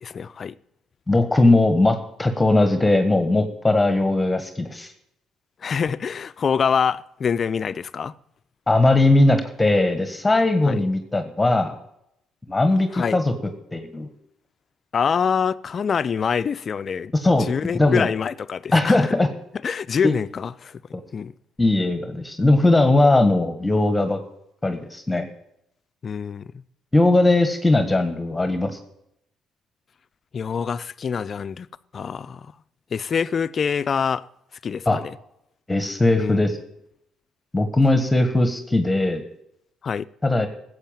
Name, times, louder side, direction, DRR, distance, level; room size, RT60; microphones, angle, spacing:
voice 1, 0.0-0.5 5.6-8.1 10.6-10.8 12.9-13.2 14.9-17.1 17.4-19.1 19.6-20.8 21.1-21.3 26.0-26.6 30.3-31.7 31.9-32.5 32.9-34.2 34.6-35.2 36.2-36.4 39.8-40.0, left 6 dB, 45° left, 0.5 m, -25 dB
voice 2, 1.1-4.9 8.7-11.7 12.5-13.3 13.7-14.1 17.1-18.1 18.7-19.3 20.0-20.1 21.6-24.2 24.6-25.3 26.9-28.7 34.8-35.0 35.7-36.6 37.5-39.2 40.2-40.5, left 2 dB, 15° left, 1.5 m, -19 dB
14.5 x 8.0 x 9.0 m
supercardioid pair, 75°, 0 cm